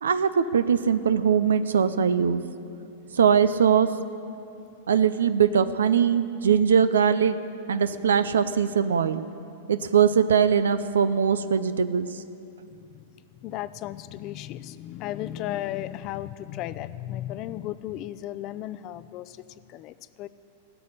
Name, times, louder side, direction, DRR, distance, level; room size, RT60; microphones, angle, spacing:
voice 1, 0.0-2.4 3.1-3.9 4.9-7.4 7.7-9.2 9.7-12.2, right 7 dB, 85° right, 13 dB, 0.5 m, -21 dB
voice 2, 12.7-19.4 19.7-20.3, left 13 dB, 45° left, 14 dB, 0.5 m, -35 dB
17.0 x 6.9 x 9.7 m, 2.7 s
hypercardioid pair, 115°, 0 cm